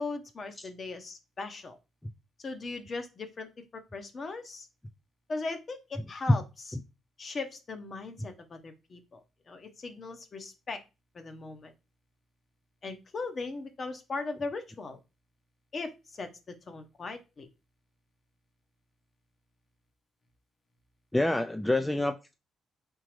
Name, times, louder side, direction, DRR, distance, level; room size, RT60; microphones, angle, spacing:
voice 1, 0.0-1.8 2.4-3.5 3.9-4.7 5.3-6.4 7.2-10.8 11.1-11.7 12.8-15.0 15.7-17.5, left 3 dB, 40° left, 0.9 m, -38 dB
voice 2, 21.1-22.3, left 1 dB, 10° left, 0.3 m, -26 dB
3.8 x 3.7 x 3.1 m
cardioid pair, 90°, 0 cm